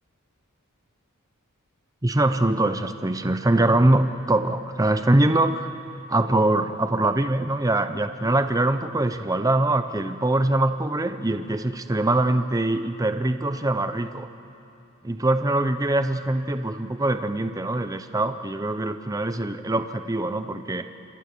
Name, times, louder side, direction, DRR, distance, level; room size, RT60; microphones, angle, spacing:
voice 1, 2.0-5.7 6.1-14.3 15.0-20.9, right 2 dB, 15° right, 9 dB, 0.7 m, -23 dB
28.0 x 26.0 x 6.9 m, 2.7 s
head